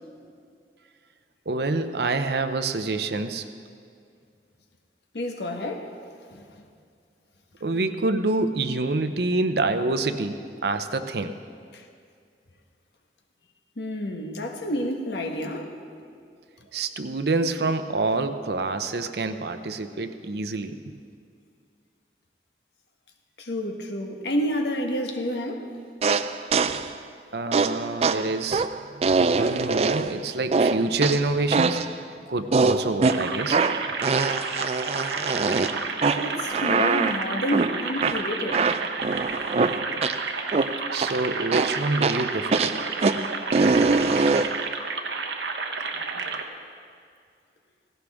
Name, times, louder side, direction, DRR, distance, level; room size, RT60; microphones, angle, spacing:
voice 1, 1.5-3.4 7.6-11.3 16.7-21.0 27.3-28.7 29.0-31.8 32.3-33.6 40.9-42.7, right 3 dB, 65° right, 0.7 m, -27 dB
voice 2, 5.1-5.9 6.3-6.5 11.7-11.8 13.8-15.8 23.4-25.7 36.2-38.7, equal, 75° left, 1.4 m, -29 dB
sound 1, 26.0-26.9 27.5-30.2 30.5-31.9 32.5-40.2 40.5-41.2 41.5-44.6, right 4 dB, 35° right, 0.4 m, -24 dB
sound 2, 33.0-46.4, right 4 dB, 85° right, 1.1 m, -31 dB
17.0 x 16.5 x 3.6 m
head